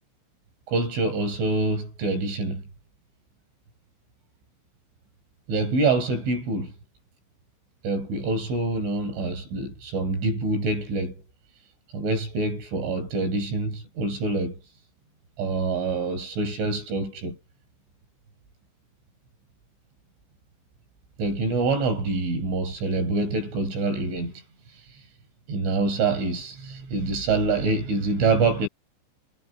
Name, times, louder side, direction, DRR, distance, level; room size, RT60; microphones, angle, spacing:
voice 1, 0.7-2.7 5.5-6.7 7.8-11.2 11.9-14.6 15.4-17.4 21.2-24.4 25.5-28.7, right 3 dB, 70° right, 10.5 m, -26 dB
omnidirectional pair, 5.8 m